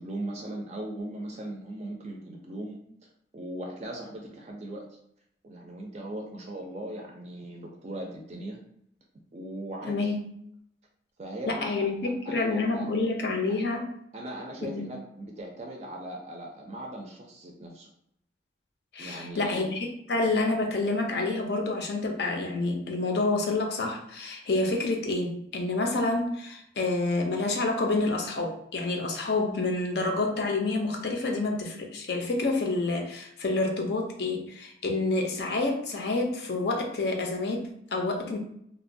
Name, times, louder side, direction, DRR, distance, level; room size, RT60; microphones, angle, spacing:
voice 1, 0.0-2.8 3.3-5.0 5.4-8.6 9.3-10.1 11.2-11.9 12.2-12.9 13.5-13.6 14.1-17.9 19.0-19.7, right 1 dB, 35° right, 0 dB, 0.4 m, -39 dB
voice 2, 9.8-10.3 11.5-13.9 14.7-14.8 18.9-38.4, left 2 dB, 60° left, 3 dB, 0.5 m, -28 dB
2.9 x 2.2 x 2.6 m, 0.72 s
head